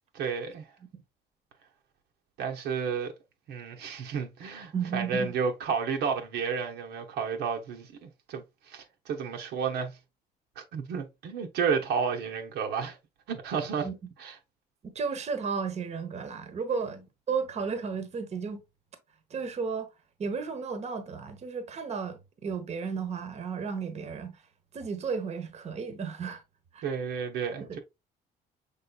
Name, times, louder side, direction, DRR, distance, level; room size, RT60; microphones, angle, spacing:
voice 1, 0.1-0.7 2.4-3.1 3.5-10.0 10.6-13.0 13.3-13.9 14.2-14.4 16.8-17.0 26.8-27.8, right 6 dB, 80° right, 1.0 m, -32 dB
voice 2, 4.7-5.3 13.8-13.9 14.9-17.0 17.3-18.6 19.3-19.9 20.2-24.3 24.7-26.4 26.7-26.8 27.5-27.8, right 5 dB, 40° right, 1.0 m, -33 dB
5.5 x 3.7 x 2.3 m
cardioid pair, 110°, 17 cm